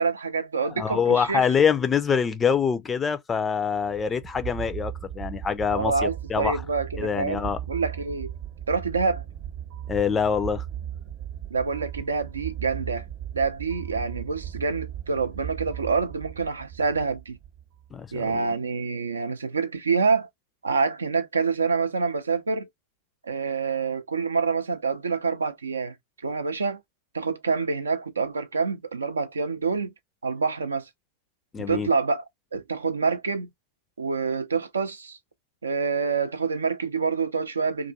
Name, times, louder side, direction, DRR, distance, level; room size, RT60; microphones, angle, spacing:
voice 1, 0.0-1.5 5.7-8.3 8.7-9.2 11.5-13.1 13.3-17.4 18.1-20.3 20.6-22.7 23.2-26.0 26.2-26.8 27.1-29.9 30.2-30.9 31.7-32.2 32.5-33.5 34.0-35.2 35.6-37.9, right 4 dB, 75° right, 0.4 m, -27 dB
voice 2, 0.6-6.6 7.0-7.6 9.9-10.7 17.9-18.5 31.5-31.9, left 6 dB, 20° left, 0.4 m, -25 dB
sound 1, 3.8-18.0, right 10 dB, 45° right, 0.8 m, -37 dB
2.4 x 2.3 x 2.6 m
figure-of-eight pair, 90°, 0 cm